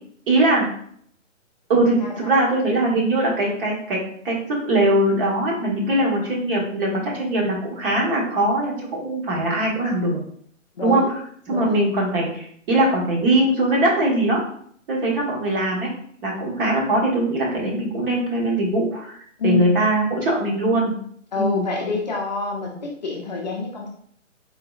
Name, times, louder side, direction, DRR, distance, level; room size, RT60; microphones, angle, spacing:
voice 1, 0.3-0.7 1.7-10.2 10.8-11.2 11.5-14.4 14.9-15.9 16.2-19.2 19.4-20.9 21.4-21.6, right 1 dB, 45° right, -3 dB, 1.3 m, -21 dB
voice 2, 2.0-2.3 10.8-11.1 11.5-11.8 19.4-19.8 21.3-23.9, left 3 dB, 35° left, -2 dB, 0.5 m, -26 dB
3.8 x 3.0 x 2.4 m, 0.63 s
figure-of-eight pair, 140°, 40 cm